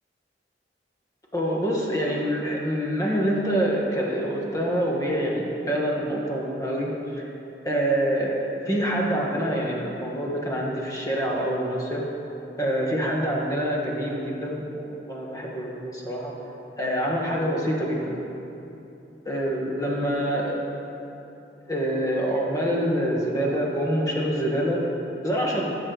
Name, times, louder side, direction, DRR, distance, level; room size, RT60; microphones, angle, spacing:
voice 1, 1.3-7.2 7.6-8.4 8.6-12.0 12.6-16.3 16.8-18.1 19.2-20.6 21.7-24.8 25.2-25.7, equal, 20° left, -3 dB, 1.4 m, -26 dB
15.5 x 6.9 x 3.9 m, 2.9 s
head